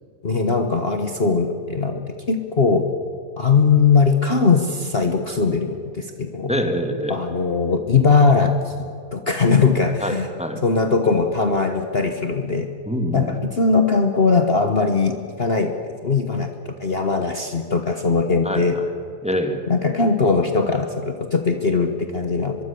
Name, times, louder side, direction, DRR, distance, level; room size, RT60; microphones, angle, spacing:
voice 1, 0.2-2.8 3.4-6.5 7.1-8.7 9.1-10.3 10.6-12.7 13.1-15.7 16.0-18.8 19.7-22.6, left 4 dB, 40° left, 5 dB, 1.3 m, -20 dB
voice 2, 6.5-7.2 10.0-10.6 12.9-13.3 18.4-18.9 19.2-19.6, equal, 5° right, 5 dB, 1.9 m, -25 dB
24.0 x 23.0 x 6.9 m, 2.5 s
omnidirectional pair, 1.7 m